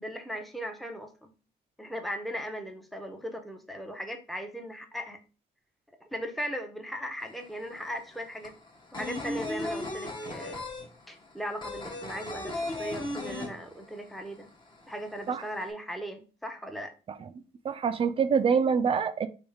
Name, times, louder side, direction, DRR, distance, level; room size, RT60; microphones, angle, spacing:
voice 1, 0.0-1.3 1.8-5.2 6.0-8.5 8.9-10.6 11.1-14.5 14.9-16.9, equal, ahead, 5 dB, 0.7 m, -38 dB
sound 1, 7.2-7.3 7.6-14.1 14.4-14.5 14.8-15.6, left 2 dB, 25° left, 0.9 m, -36 dB
voice 2, 17.6-19.3, right 6 dB, 30° right, 10 dB, 0.4 m, -25 dB
3.5 x 3.1 x 4.7 m, 0.34 s
cardioid pair, 140°, 18 cm